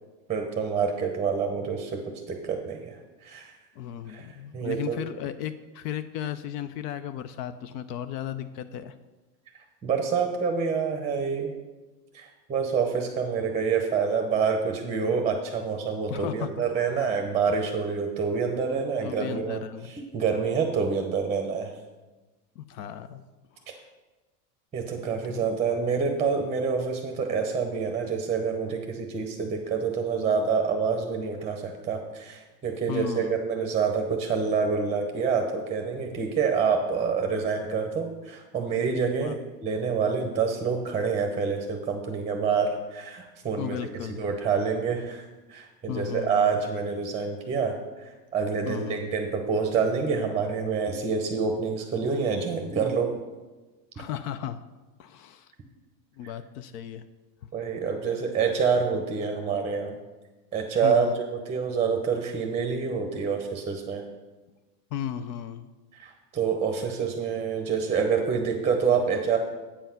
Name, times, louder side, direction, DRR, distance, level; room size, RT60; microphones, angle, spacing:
voice 1, 0.3-2.0 2.3-3.0 3.2-3.5 4.1-4.3 4.5-5.0 9.8-11.5 12.1-19.6 19.9-21.7 24.7-39.3 39.6-43.8 44.2-47.7 48.3-53.1 57.5-59.9 60.5-64.0 65.9-69.4, right 5 dB, 15° right, 4 dB, 0.7 m, -27 dB
voice 2, 3.8-9.0 16.1-17.2 19.0-19.9 22.6-23.2 23.5-23.8 24.9-25.4 32.9-33.4 39.2-39.4 43.6-44.2 45.9-46.6 48.6-49.0 54.0-54.6 55.0-55.5 56.2-57.0 60.8-61.2 64.9-65.7, left 10 dB, 75° left, 12 dB, 0.6 m, -35 dB
8.4 x 5.6 x 5.8 m, 1.2 s
supercardioid pair, 135°, 49 cm